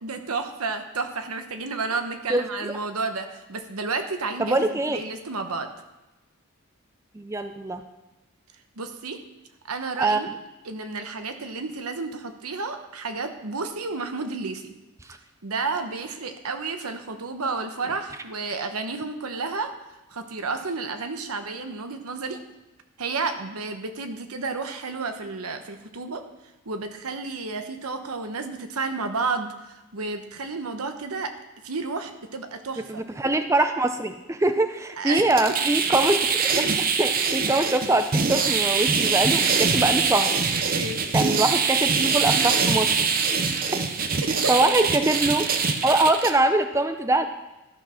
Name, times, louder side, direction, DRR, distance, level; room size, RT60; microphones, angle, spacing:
voice 1, 0.0-5.7 8.8-9.2 9.6-10.3 10.6-14.7 15.4-19.7 20.1-22.4 23.0-26.2 26.6-31.3 31.6-33.0 35.0-35.2 40.6-41.0 44.2-44.7, right 4 dB, 85° right, 7 dB, 1.0 m, -31 dB
voice 2, 2.3-2.7 4.4-5.0 7.1-7.8 10.0-10.2 32.9-36.2 36.8-40.3 41.1-42.9 43.7-43.8 44.5-45.4 45.8-47.3, right 2 dB, 15° right, 7 dB, 0.4 m, -23 dB
sound 1, 35.2-46.3, right 5 dB, 40° right, 0.7 m, -23 dB
12.5 x 6.4 x 5.6 m, 1.0 s
head